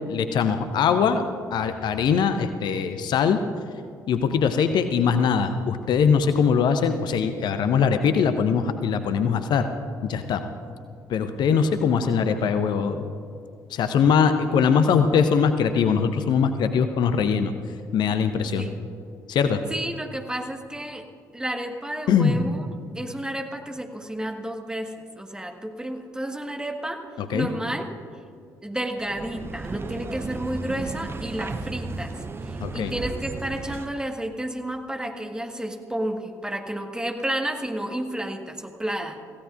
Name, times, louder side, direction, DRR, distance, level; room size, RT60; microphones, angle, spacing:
voice 1, 0.1-1.2 1.5-3.4 4.1-9.7 10.0-10.4 11.1-13.0 13.7-17.5 17.9-18.6 19.3-19.6 22.1-22.5 27.3-27.5 32.6-32.9, left 6 dB, 50° left, 9 dB, 0.7 m, -22 dB
voice 2, 19.7-21.1 21.3-22.7 22.9-27.0 27.3-27.9 28.6-39.2, right 1 dB, 10° right, 4 dB, 1.5 m, -31 dB
sound 1, 29.0-34.1, right 3 dB, 25° right, 0.7 m, -34 dB
25.0 x 16.0 x 2.5 m, 2.3 s
figure-of-eight pair, 45°, 9 cm